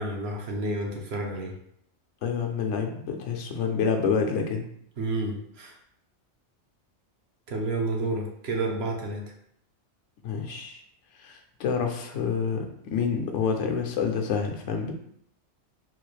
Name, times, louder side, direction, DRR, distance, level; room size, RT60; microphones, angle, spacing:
voice 1, 0.0-1.5 5.0-5.7 7.5-9.2, right 2 dB, 65° right, 0 dB, 0.9 m, -30 dB
voice 2, 2.2-4.7 10.2-10.8 11.2-14.9, left 6 dB, 85° left, 4 dB, 0.9 m, -28 dB
3.9 x 2.4 x 3.1 m, 0.69 s
omnidirectional pair, 1.2 m